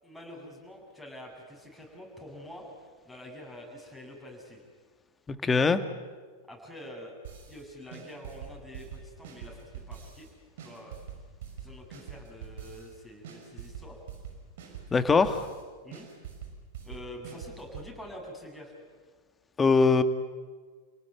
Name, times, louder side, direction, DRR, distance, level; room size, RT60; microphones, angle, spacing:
voice 1, 0.0-2.6 3.0-4.6 6.5-7.2 7.5-10.3 10.6-11.0 11.6-14.0 15.8-16.1 16.8-18.7, equal, ahead, 0 dB, 7.8 m, -46 dB
voice 2, 5.4-5.8 14.9-15.5 19.6-20.0, left 4 dB, 20° left, 10 dB, 1.7 m, -21 dB
sound 1, 7.2-7.6 7.9-10.3 10.6-12.9 13.2-15.6 15.9-17.9, right 8 dB, 65° right, 6.0 m, -44 dB
29.0 x 18.5 x 9.6 m, 1.5 s
hypercardioid pair, 95°, 0 cm